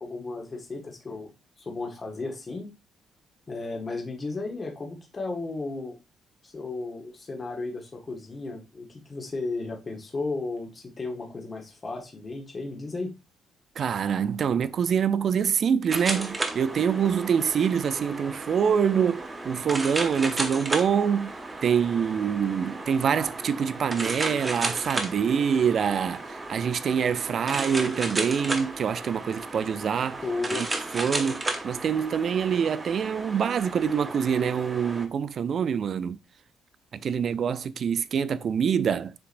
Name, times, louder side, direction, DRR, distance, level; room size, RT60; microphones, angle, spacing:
voice 1, 0.0-1.3 1.6-2.7 3.5-6.0 6.4-13.1 30.2-30.7, left 3 dB, 35° left, 1.1 m, -34 dB
voice 2, 13.8-21.3 21.6-30.2 30.6-30.7 30.9-36.2 36.9-39.1, right 7 dB, 55° right, 0.3 m, -25 dB
sound 1, 15.9-35.1, right 2 dB, 25° right, 0.8 m, -34 dB
6.7 x 2.9 x 2.5 m
cardioid pair, 90°, 0 cm